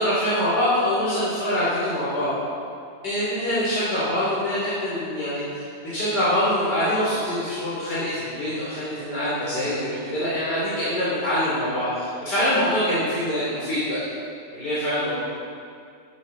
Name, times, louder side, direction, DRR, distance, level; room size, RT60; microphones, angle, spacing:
voice 1, 0.0-2.3 3.0-14.1 14.5-15.1, equal, 70° left, -10 dB, 4.1 m, -24 dB
14.0 x 11.5 x 4.2 m, 2.3 s
omnidirectional pair, 1.9 m